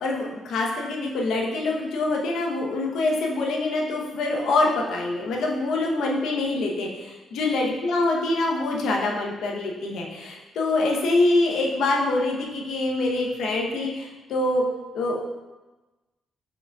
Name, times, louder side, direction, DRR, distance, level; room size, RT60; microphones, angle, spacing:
voice 1, 0.0-14.6 14.9-15.2, left 2 dB, 75° left, 0 dB, 0.7 m, -25 dB
4.9 x 3.9 x 2.3 m, 1.2 s
cardioid pair, 90°, 0 cm